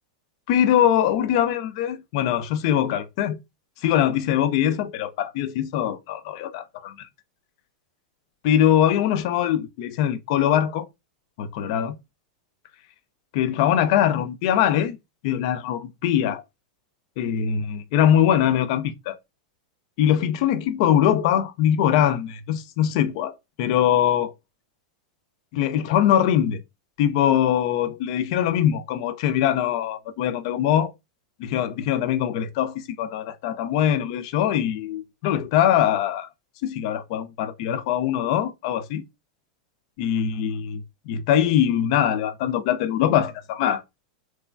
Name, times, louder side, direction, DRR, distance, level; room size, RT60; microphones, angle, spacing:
voice 1, 0.5-3.4 3.8-7.1 8.4-10.9 11.4-12.0 13.3-15.0 15.2-16.4 17.2-19.2 20.0-24.3 25.5-26.6 27.0-30.9 31.4-36.3 36.6-39.0 40.0-43.8, left 10 dB, 60° left, 0.5 m, -22 dB
3.0 x 2.2 x 2.5 m
hypercardioid pair, 125°, 4 cm